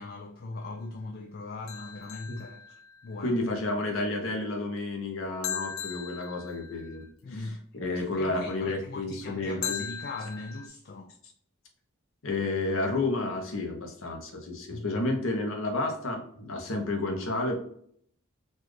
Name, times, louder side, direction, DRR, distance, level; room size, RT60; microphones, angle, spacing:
voice 1, 0.0-2.6 3.0-3.4 7.2-7.6 8.2-11.1 14.7-15.0, left 3 dB, 45° left, 0.3 m, -40 dB
sound 1, 1.7-3.2 5.4-7.1 9.6-10.7, left 7 dB, 85° left, 0.6 m, -38 dB
voice 2, 3.2-7.5 7.7-9.8 12.2-17.5, left 2 dB, 70° left, 0.9 m, -31 dB
4.2 x 2.4 x 3.1 m
head